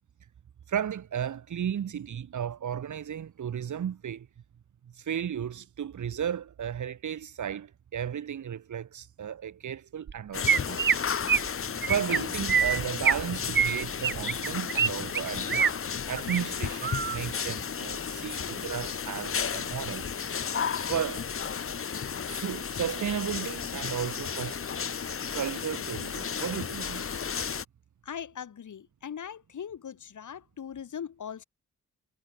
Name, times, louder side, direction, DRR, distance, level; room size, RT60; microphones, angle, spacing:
voice 1, 0.7-4.3 5.0-10.8 11.8-15.6 16.1-20.1 20.9-21.3 22.3-24.7 25.3-27.2, right 9 dB, 75° right, 1.8 m, -34 dB
Chirp tweet, 10.1-10.2 10.5-11.0 11.3-11.5 11.8-12.2 12.5-13.2 13.5-14.9 15.1-15.7 16.1-16.4 16.8-17.2, right 7 dB, 40° right, 0.7 m, -25 dB
sound 1, 10.3-27.7, left 7 dB, 45° left, 1.2 m, -33 dB
voice 2, 28.0-31.4, left 8 dB, 75° left, 3.9 m, -40 dB
wide cardioid pair, 130°, 30 cm